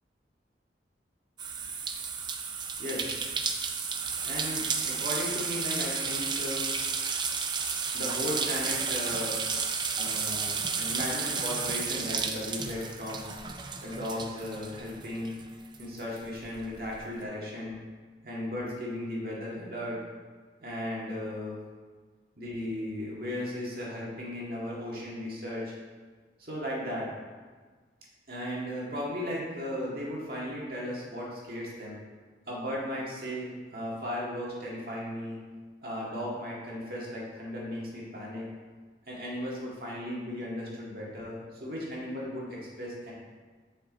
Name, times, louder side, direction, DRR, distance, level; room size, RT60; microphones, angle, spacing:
sound 1, 1.4-15.4 15.7-17.0, right 5 dB, 25° right, 0.4 m, -32 dB
voice 1, 2.8-3.2 4.2-6.7 7.9-9.4 9.9-13.3 13.8-15.3 15.8-17.8 18.2-20.0 20.6-21.6 22.4-25.7 26.4-27.1 28.3-32.0 32.5-35.4 35.8-38.5 39.1-43.1, left 1 dB, 55° right, -4 dB, 1.9 m, -36 dB
7.6 x 5.8 x 4.1 m, 1.5 s
head